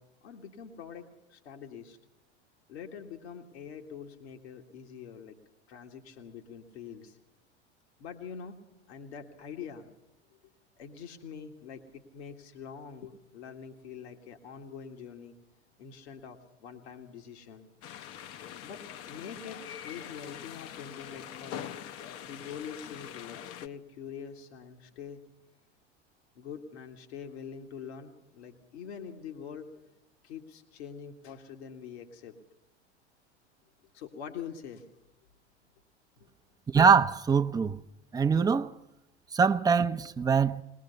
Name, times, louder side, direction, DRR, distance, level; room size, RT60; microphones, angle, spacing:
voice 1, 0.0-2.0 2.7-5.4 5.7-7.2 8.0-8.6 8.9-9.9 10.8-15.4 15.8-17.7 18.6-21.8 22.2-25.3 26.4-29.7 30.2-32.4 33.9-34.9 36.2-36.3, left 7 dB, 70° left, 1.9 m, -44 dB
sound 1, 17.8-23.7, left 10 dB, 40° left, 0.8 m, -43 dB
voice 2, 36.7-37.8 38.1-38.7 39.3-40.6, right 6 dB, 10° right, 0.6 m, -23 dB
21.0 x 20.0 x 6.8 m
hypercardioid pair, 85°, 34 cm